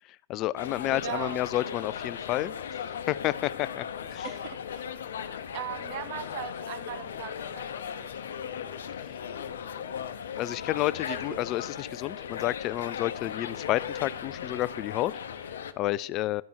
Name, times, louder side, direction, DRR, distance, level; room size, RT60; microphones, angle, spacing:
voice 1, 0.1-4.3 9.1-9.2 10.4-16.4, left 15 dB, 35° left, 20 dB, 0.3 m, -31 dB
sound 1, 0.6-15.7, left 8 dB, 70° left, 0.8 m, -37 dB
voice 2, 0.9-1.4 4.2-5.0 5.5-8.2 11.1-11.4, right 10 dB, 50° right, 12 dB, 1.0 m, -39 dB
13.0 x 5.4 x 4.6 m, 0.67 s
hypercardioid pair, 120°, 0 cm